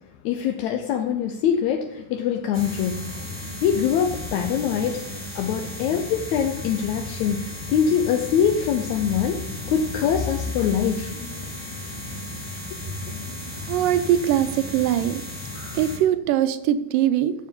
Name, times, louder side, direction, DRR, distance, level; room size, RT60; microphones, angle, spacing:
voice 1, 0.2-3.1 3.6-5.0 5.4-11.1, left 8 dB, 75° left, 4 dB, 1.8 m, -23 dB
sound 1, 2.5-16.0, left 2 dB, 15° left, 1.0 m, -34 dB
voice 2, 13.7-15.2 15.7-17.3, right 11 dB, 85° right, 11 dB, 2.3 m, -21 dB
13.0 x 7.2 x 5.4 m, 0.84 s
omnidirectional pair, 4.0 m